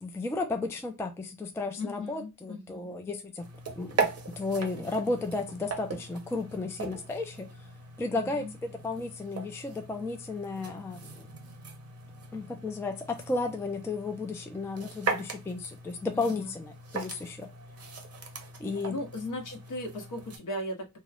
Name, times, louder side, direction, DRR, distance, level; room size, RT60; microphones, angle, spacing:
voice 1, 0.0-3.5 3.8-7.5 8.0-11.3 12.3-17.5 18.6-19.0, left 3 dB, 10° left, 0.3 m, -33 dB
voice 2, 1.8-2.9 8.1-8.5 16.1-16.6 18.9-21.0, left 1 dB, 55° left, 0.9 m, -37 dB
sound 1, 3.4-20.4, right 4 dB, 40° right, 0.7 m, -39 dB
3.0 x 2.0 x 2.3 m
wide cardioid pair, 110°, 36 cm